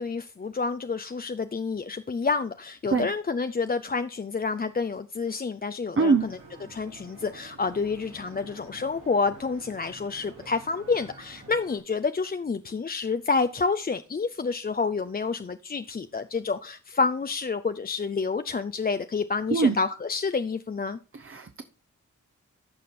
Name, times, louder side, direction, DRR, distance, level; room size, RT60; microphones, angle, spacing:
voice 1, 0.0-6.4 6.7-21.0, left 4 dB, 30° left, 10 dB, 0.5 m, -29 dB
voice 2, 6.0-6.3 19.5-19.8 21.1-21.6, right 4 dB, 40° right, 6 dB, 0.9 m, -23 dB
sound 1, 6.1-11.8, right 2 dB, 70° right, 3.9 m, -49 dB
14.0 x 5.0 x 4.2 m, 0.35 s
cardioid pair, 45°, 32 cm